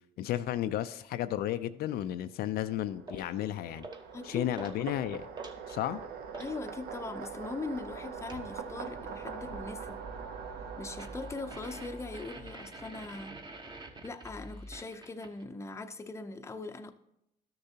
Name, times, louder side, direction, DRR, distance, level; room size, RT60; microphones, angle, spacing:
voice 1, 0.2-3.9 4.2-5.3 5.7-6.0, left 12 dB, 65° left, 0.4 m, -33 dB
sound 1, 2.5-13.1, right 6 dB, 65° right, 0.8 m, -43 dB
sound 2, 3.1-3.3 3.8-4.2 4.5-4.8 5.1-6.6 8.3-8.5 11.0-15.4, right 2 dB, 25° right, 1.0 m, -46 dB
voice 2, 4.1-4.7 6.4-10.0 10.8-13.4 14.0-16.9, left 3 dB, 15° left, 0.6 m, -41 dB
12.5 x 6.6 x 2.8 m
cardioid pair, 110°, 17 cm